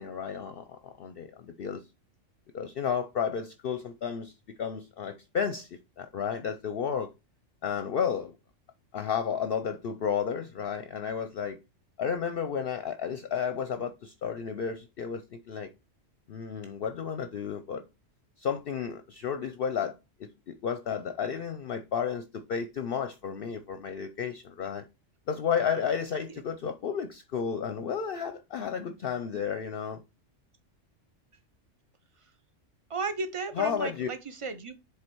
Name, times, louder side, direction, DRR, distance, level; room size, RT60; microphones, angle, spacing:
voice 1, 0.0-1.8 2.5-7.1 7.6-8.4 8.9-11.6 12.0-15.7 16.3-17.8 18.4-24.8 25.3-30.0 33.5-34.1, left 7 dB, 55° left, 0.7 m, -32 dB
voice 2, 32.9-34.8, right 4 dB, 35° right, 0.6 m, -34 dB
7.7 x 3.5 x 4.5 m
omnidirectional pair, 1.3 m